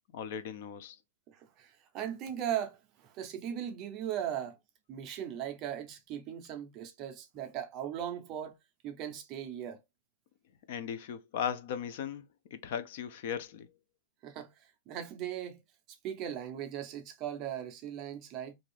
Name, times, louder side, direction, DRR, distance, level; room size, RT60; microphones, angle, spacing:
voice 1, 0.1-1.0 10.7-13.7, left 8 dB, 45° left, 0.4 m, -37 dB
voice 2, 1.3-4.6 4.9-8.6 8.8-9.8 14.2-14.5 14.9-15.6 16.0-18.5, right 10 dB, 25° right, 0.5 m, -38 dB
2.6 x 2.3 x 3.2 m
supercardioid pair, 180°, 0 cm